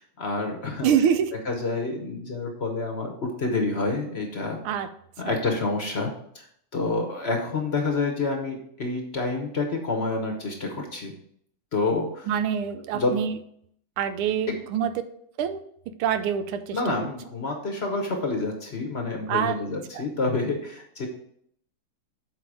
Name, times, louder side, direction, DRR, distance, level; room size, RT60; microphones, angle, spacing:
voice 1, 0.0-0.9 1.4-4.6 5.2-6.1 6.3-6.5 6.7-11.1 11.7-12.3 12.9-13.1 16.7-21.1, left 3 dB, 45° left, 3 dB, 0.9 m, -28 dB
voice 2, 0.8-1.3 4.6-4.9 5.3-5.4 12.3-13.4 14.0-14.9 15.4-15.6 16.0-16.8 19.3-19.6 19.9-20.0, right 8 dB, 90° right, 10 dB, 1.6 m, -25 dB
7.6 x 4.7 x 4.8 m, 0.67 s
omnidirectional pair, 2.3 m